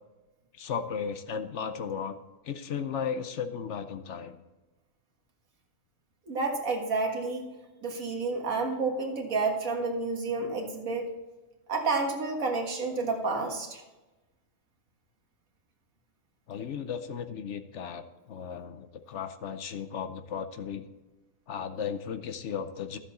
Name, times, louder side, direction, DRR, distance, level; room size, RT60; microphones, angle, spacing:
voice 1, 0.5-2.2 2.4-4.4 16.5-20.9 21.5-23.0, left 7 dB, 65° left, 9 dB, 1.0 m, -35 dB
voice 2, 6.3-7.5 7.8-11.1 11.7-13.8, right 3 dB, 90° right, 2 dB, 2.0 m, -30 dB
13.0 x 7.4 x 4.1 m, 1.1 s
omnidirectional pair, 1.4 m